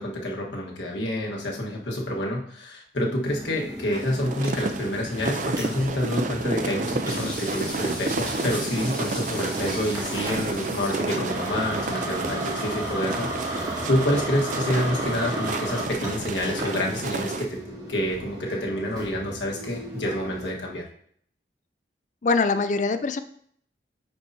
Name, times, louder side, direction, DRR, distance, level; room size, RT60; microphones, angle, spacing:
voice 1, 0.0-17.6 17.9-20.8, left 1 dB, 80° left, -1 dB, 1.4 m, -28 dB
Espresso Machines, 3.2-20.5, right 1 dB, 20° right, 1.5 m, -35 dB
sound 1, 3.9-17.4, right 3 dB, 45° right, 0.5 m, -31 dB
sound 2, 7.1-17.1, left 1 dB, 5° left, 1.6 m, -41 dB
voice 2, 22.2-23.2, left 4 dB, 40° left, 10 dB, 0.4 m, -23 dB
9.5 x 4.7 x 2.7 m, 0.64 s
head